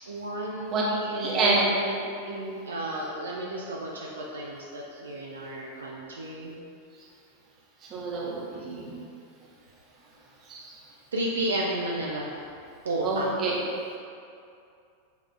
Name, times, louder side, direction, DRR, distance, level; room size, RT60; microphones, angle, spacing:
voice 1, 0.1-6.6 11.1-12.3 12.8-13.3, right 1 dB, 70° right, -3 dB, 0.3 m, -33 dB
voice 2, 1.1-1.7 7.8-9.0 10.5-10.7 13.0-13.6, right 3 dB, 30° right, -4 dB, 0.7 m, -27 dB
5.2 x 2.3 x 2.2 m, 2.4 s
figure-of-eight pair, 90°, 0 cm